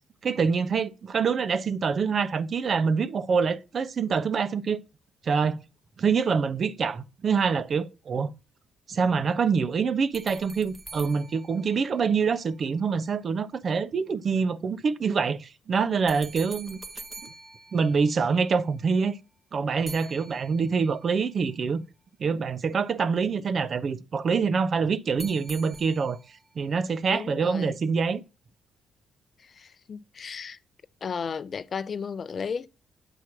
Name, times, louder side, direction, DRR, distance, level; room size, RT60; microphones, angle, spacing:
voice 1, 0.2-4.8 5.2-5.6 6.0-8.3 8.9-16.8 17.7-19.2 19.5-21.8 22.2-26.2 26.6-28.2, right 5 dB, 50° right, 0.6 m, -25 dB
sound 1, 10.1-12.5 16.1-18.6 19.9-21.0 25.2-26.4, right 3 dB, 25° right, 1.0 m, -45 dB
voice 2, 27.1-27.7 29.4-30.6 31.0-32.7, left 6 dB, 45° left, 0.5 m, -34 dB
8.0 x 3.0 x 5.8 m
cardioid pair, 90°, 0 cm